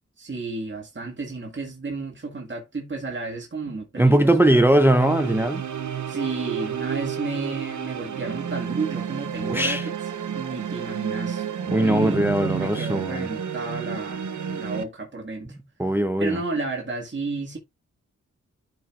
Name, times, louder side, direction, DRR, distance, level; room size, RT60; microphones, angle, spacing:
voice 1, 0.2-4.8 6.1-9.9 10.3-11.5 11.7-15.6 16.2-17.6, right 3 dB, 40° right, 1.9 m, -32 dB
voice 2, 4.0-5.6 9.5-9.8 11.7-13.3 15.8-16.4, right 1 dB, 5° right, 0.7 m, -20 dB
sound 1, 4.6-14.8, right 8 dB, 75° right, 0.9 m, -31 dB
12.5 x 4.4 x 2.4 m
cardioid pair, 60°, 30 cm